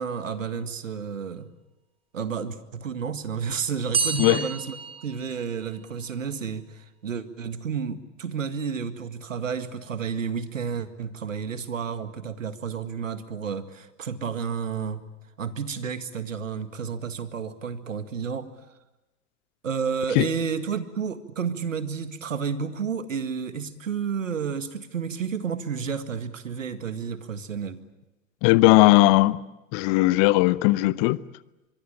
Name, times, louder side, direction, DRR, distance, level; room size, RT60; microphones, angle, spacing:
voice 1, 0.0-1.5 2.1-4.8 5.0-15.0 15.4-18.5 19.6-27.8, right 6 dB, 75° right, 2.0 m, -31 dB
sound 1, 3.9-5.9, right 5 dB, 15° right, 3.2 m, -29 dB
voice 2, 28.4-29.4 29.7-31.2, left 20 dB, 35° left, 0.8 m, -18 dB
24.5 x 23.0 x 8.9 m
figure-of-eight pair, 100°, 39 cm